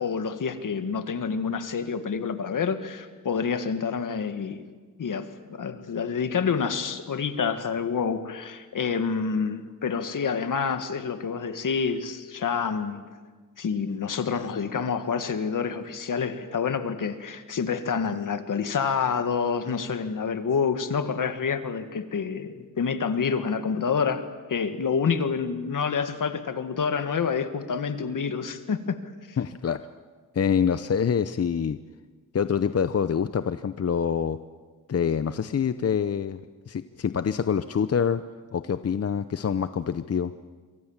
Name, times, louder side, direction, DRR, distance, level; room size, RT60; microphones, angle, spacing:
voice 1, 0.0-4.7 5.0-13.0 13.6-24.2 24.5-29.0 29.3-29.4, left 6 dB, 70° left, 9 dB, 1.9 m, -28 dB
voice 2, 29.4-29.8 30.3-31.8 32.3-34.4 34.9-38.2 38.5-40.3, left 7 dB, 50° left, 12 dB, 0.8 m, -26 dB
27.0 x 24.0 x 7.4 m, 1.4 s
wide cardioid pair, 90°, 33 cm